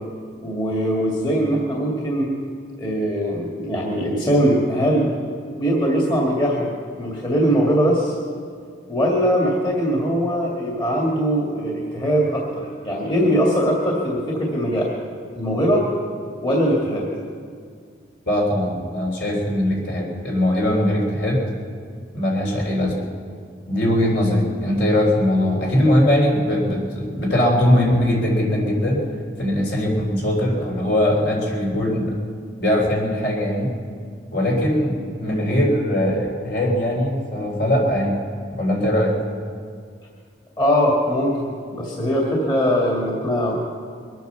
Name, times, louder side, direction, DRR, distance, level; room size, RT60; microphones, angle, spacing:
voice 1, 0.4-2.3 2.8-5.1 5.5-6.7 7.0-8.2 8.9-14.9 15.3-15.9 16.4-17.1 40.6-41.4 41.7-43.6, equal, 25° left, -3 dB, 2.1 m, -21 dB
voice 2, 18.3-21.4 22.1-23.1 23.7-29.1 29.4-32.2 32.6-33.7 34.3-34.9 35.2-38.2 38.6-39.2, left 1 dB, 60° left, -1 dB, 3.9 m, -20 dB
23.0 x 9.2 x 6.9 m, 2.1 s
head